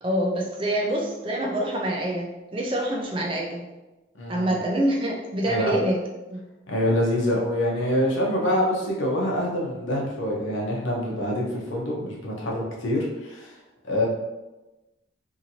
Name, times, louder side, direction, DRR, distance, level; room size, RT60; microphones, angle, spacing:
voice 1, 0.0-3.7 4.3-6.0 6.3-6.4, right 1 dB, 25° right, -1 dB, 0.5 m, -26 dB
voice 2, 4.1-4.6 5.5-5.7 6.7-13.5 13.9-14.1, left 1 dB, 80° left, -3 dB, 0.8 m, -25 dB
2.8 x 2.7 x 2.7 m, 1.1 s
head